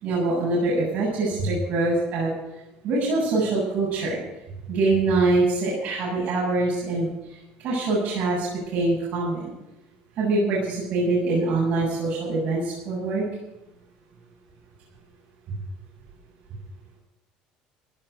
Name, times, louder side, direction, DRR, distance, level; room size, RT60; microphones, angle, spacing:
voice 1, 0.0-2.3 2.8-4.2 4.7-7.4 7.6-9.5 10.2-13.2, right 2 dB, 55° right, -5 dB, 7.6 m, -24 dB
15.5 x 10.0 x 7.9 m, 0.94 s
cardioid pair, 115°, 3 cm